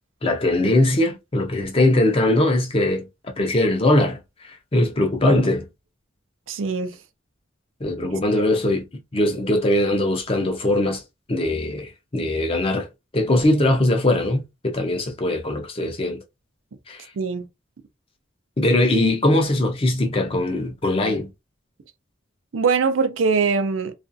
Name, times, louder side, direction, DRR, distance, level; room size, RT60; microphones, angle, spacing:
voice 1, 0.2-3.1 3.4-4.2 4.4-5.6 7.8-8.8 9.1-11.0 11.3-12.9 13.1-16.2 16.9-17.1 18.6-21.3, left 1 dB, 30° left, 0.6 m, -21 dB
voice 2, 6.5-7.0 17.2-17.5 22.5-23.9, right 5 dB, 85° right, 0.5 m, -22 dB
2.4 x 2.3 x 2.5 m
head